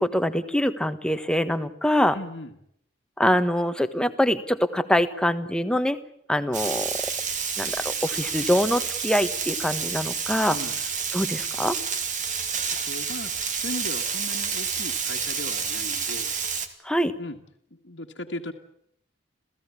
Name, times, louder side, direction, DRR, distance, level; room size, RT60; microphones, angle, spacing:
voice 1, 0.0-2.2 3.2-6.0 6.3-6.9 7.6-10.6 11.1-11.8 16.8-17.1, equal, 5° left, 10 dB, 1.3 m, -24 dB
voice 2, 2.1-2.5 10.5-10.8 12.8-16.3 17.2-17.4 17.7-18.5, left 1 dB, 70° left, 2 dB, 1.8 m, -37 dB
Frying (food), 6.5-16.7, right 6 dB, 40° right, 2.4 m, -29 dB
28.0 x 16.5 x 8.6 m, 0.73 s
head